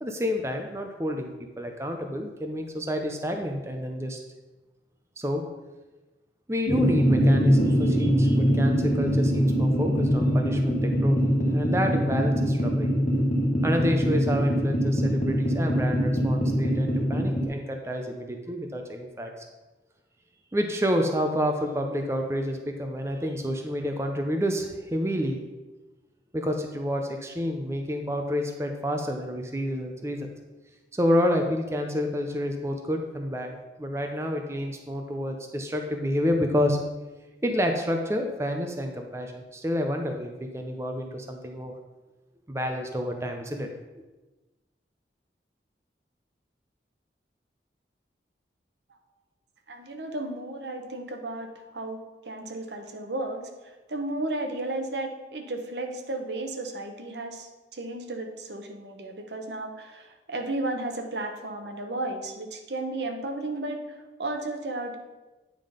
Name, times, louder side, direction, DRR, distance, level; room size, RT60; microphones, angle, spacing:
voice 1, 0.0-4.2 5.2-5.4 6.5-11.2 11.5-12.9 13.6-19.3 20.5-25.4 26.3-30.3 30.9-36.8 37.4-41.7 42.5-43.7, equal, 15° right, 3 dB, 0.6 m, -29 dB
sound 1, 6.7-17.5, equal, 45° left, 1.2 m, -23 dB
voice 2, 49.7-52.0 52.3-65.0, right 2 dB, 80° right, 5 dB, 0.9 m, -34 dB
9.3 x 3.8 x 5.1 m, 1.1 s
head